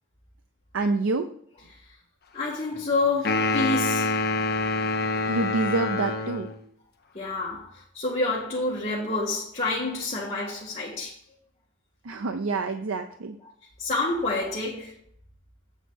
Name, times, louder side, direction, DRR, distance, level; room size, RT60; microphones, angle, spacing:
voice 1, 0.7-1.3 5.3-6.5 12.0-13.4, right 3 dB, 80° right, 0.5 m, -27 dB
voice 2, 2.3-4.2 7.1-11.1 13.8-14.9, left 3 dB, 30° left, 1.4 m, -28 dB
sound 1, 3.2-6.6, left 3 dB, 50° left, 0.8 m, -26 dB
8.0 x 4.1 x 6.1 m
head